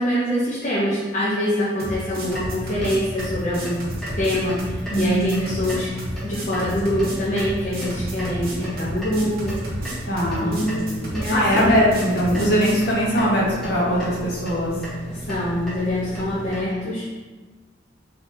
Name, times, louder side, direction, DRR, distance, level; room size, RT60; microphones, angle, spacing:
voice 1, 0.0-3.8 4.2-5.9 6.2-9.6 10.4-11.8 15.1-17.1, equal, 40° left, -9 dB, 0.6 m, -24 dB
sound 1, 1.8-12.8, equal, 55° right, 0.8 m, -32 dB
sound 2, 2.2-16.6, right 1 dB, 5° left, 0.8 m, -34 dB
voice 2, 4.9-5.5 10.1-10.6 11.3-14.7, equal, 60° left, -6 dB, 1.0 m, -21 dB
3.8 x 2.8 x 2.6 m, 1.3 s
head